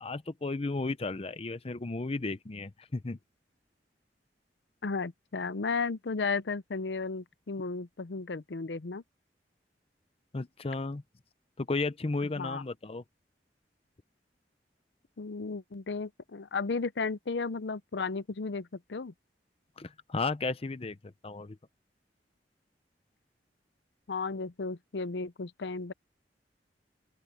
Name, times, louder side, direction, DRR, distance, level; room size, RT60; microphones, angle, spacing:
voice 1, 0.0-3.2 10.3-11.0 11.6-13.0 19.8-21.0 21.2-21.6, left 3 dB, 35° left, 0.6 m, -34 dB
voice 2, 4.8-9.0 12.4-12.6 15.2-19.1 24.1-25.9, left 4 dB, 75° left, 0.6 m, -34 dB
open air
head